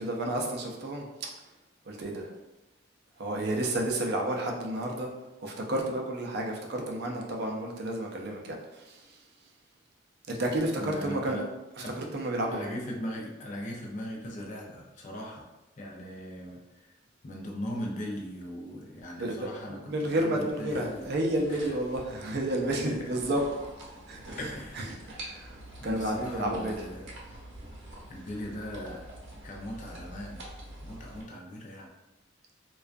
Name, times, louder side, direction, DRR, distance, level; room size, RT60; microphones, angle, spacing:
voice 1, 0.0-1.4 1.9-2.4 3.2-5.1 5.4-9.3 10.3-11.4 11.8-12.7 19.2-23.4 23.9-26.8, right 1 dB, 55° right, 0 dB, 0.4 m, -31 dB
voice 2, 10.8-11.5 11.8-11.9 12.5-15.5 15.8-16.9 17.2-21.0 21.7-21.8 22.5-23.0 23.3-23.4 24.4-25.0 25.8-27.1 28.1-29.1 29.4-30.4 30.8-31.9, left 1 dB, 40° left, -1 dB, 0.4 m, -39 dB
sound 1, 20.6-31.2, right 1 dB, 75° right, 0.8 m, -46 dB
2.3 x 2.2 x 2.5 m, 1.0 s
head